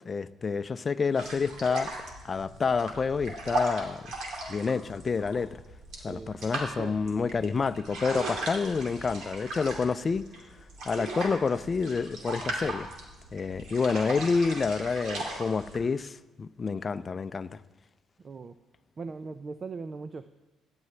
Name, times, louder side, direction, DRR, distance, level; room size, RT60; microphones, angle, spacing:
voice 1, 0.1-1.9 2.2-4.0 4.5-5.6 6.0-10.3 10.9-12.9 13.3-17.6, left 5 dB, 35° left, 0.5 m, -28 dB
sound 1, 1.2-15.8, right 2 dB, 70° right, 2.7 m, -37 dB
voice 2, 6.1-6.4 6.8-7.0 18.2-18.6 19.0-20.3, right 4 dB, 40° right, 0.5 m, -39 dB
17.0 x 10.5 x 3.3 m
supercardioid pair, 70°, 0 cm